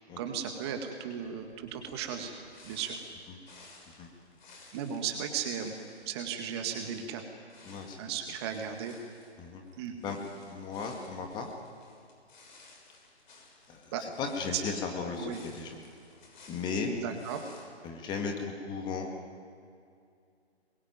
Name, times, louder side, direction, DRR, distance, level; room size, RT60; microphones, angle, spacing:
voice 1, 0.2-2.3 2.6-3.0 4.7-5.7 6.1-7.2 8.0-8.9 9.8-10.0 13.9-14.0 14.5-14.6 15.2-15.4 16.9-17.5, right 8 dB, 25° right, 5 dB, 1.9 m, -35 dB
sound 1, 1.2-17.6, left 3 dB, 45° left, 6.5 m, -57 dB
voice 2, 7.6-8.0 9.4-9.6 10.0-10.2 10.5-11.5 13.7-13.9 14.2-15.8 16.5-16.9 17.8-19.1, left 5 dB, 15° left, 3 dB, 2.1 m, -36 dB
26.5 x 22.5 x 9.4 m, 2.4 s
figure-of-eight pair, 140°, 33 cm